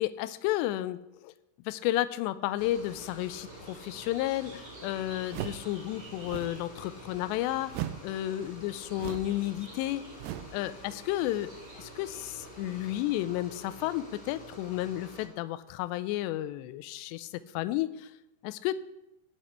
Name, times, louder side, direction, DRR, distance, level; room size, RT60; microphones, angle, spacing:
voice 1, 0.0-1.3 1.7-7.7 8.0-10.0 10.5-17.3 17.5-18.1 18.4-18.8, left 14 dB, 80° left, 14 dB, 2.7 m, -32 dB
sound 1, 2.6-15.3, equal, 25° left, 1.7 m, -48 dB
sound 2, 2.6-12.9, right 1 dB, 20° right, 4.3 m, -53 dB
sound 3, 5.3-5.7 6.2-6.6 7.7-8.1 8.9-9.4 10.2-10.6, right 13 dB, 85° right, 2.5 m, -37 dB
16.5 x 8.1 x 4.4 m, 0.90 s
omnidirectional pair, 5.1 m